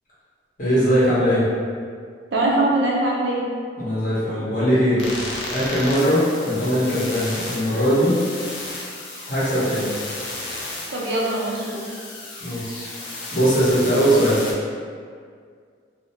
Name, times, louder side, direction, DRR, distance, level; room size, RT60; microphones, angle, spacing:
voice 1, 0.6-1.4 3.8-5.1 5.5-8.2 9.3-9.9 12.4-12.9 13.3-14.4, equal, 45° left, -10 dB, 0.9 m, -20 dB
voice 2, 2.3-3.4 10.9-11.8, right 2 dB, 70° right, -4 dB, 0.5 m, -22 dB
sound 1, 5.0-14.5, left 2 dB, 90° left, 0.6 m, -33 dB
2.6 x 2.0 x 2.8 m, 2.1 s
head